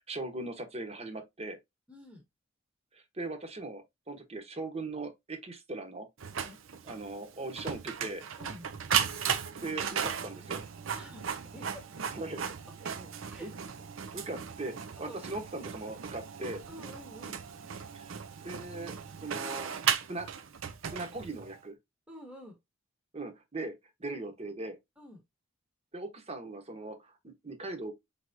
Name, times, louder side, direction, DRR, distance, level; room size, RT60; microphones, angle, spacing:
voice 1, 0.0-1.6 2.9-6.1 6.8-8.2 9.6-10.6 12.1-12.4 13.0-13.1 13.4-13.6 14.1-16.6 17.9-18.9 19.2-19.7 20.1-20.3 20.9-21.7 23.1-23.7 24.0-24.8 25.9-27.9, right 2 dB, 35° right, 1.0 m, -39 dB
voice 2, 1.9-2.2 6.4-6.6 8.4-8.7 10.9-11.9 12.8-12.9 13.2-13.5 15.0-15.2 16.7-17.4 22.1-22.6 25.0-25.2, equal, 5° right, 1.0 m, -49 dB
Printer, 6.2-21.6, right 7 dB, 90° right, 0.6 m, -36 dB
4.6 x 3.5 x 2.6 m
head